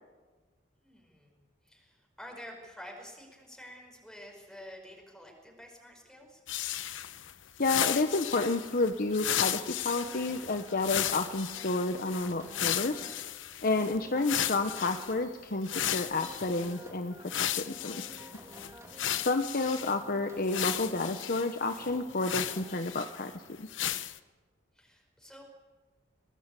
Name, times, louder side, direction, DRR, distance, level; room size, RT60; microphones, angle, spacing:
voice 1, 0.8-1.3 1.6-6.4 18.9-19.1 24.7-25.4, equal, 5° left, 0 dB, 5.1 m, -49 dB
sound 1, 6.5-15.1 15.6-16.8 17.3-20.0 20.5-23.3 23.7-24.2, left 11 dB, 80° left, 0.9 m, -35 dB
voice 2, 7.6-9.6 9.8-13.0 13.6-18.0 19.2-23.3 23.6-23.7, left 3 dB, 50° left, 7 dB, 1.0 m, -30 dB
sound 2, 9.9-13.2 13.6-15.3 15.7-17.4 17.7-19.4 19.6-21.3 21.7-22.8, equal, 15° right, 2.6 m, -51 dB
24.0 x 18.5 x 8.3 m, 1.3 s
head